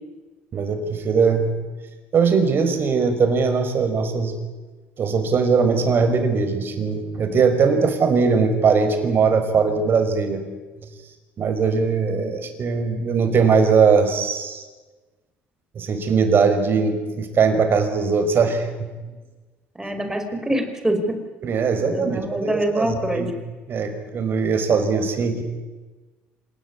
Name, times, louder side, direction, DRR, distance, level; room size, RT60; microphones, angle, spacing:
voice 1, 0.5-1.5 2.1-4.4 5.0-10.4 11.4-14.6 15.8-18.9 21.4-23.3 23.7-25.4, right 5 dB, 50° right, 7 dB, 5.4 m, -20 dB
voice 2, 19.8-21.3 21.8-23.3, right 1 dB, 10° right, 6 dB, 5.5 m, -25 dB
26.5 x 19.0 x 9.9 m, 1.3 s
supercardioid pair, 90°, 5 cm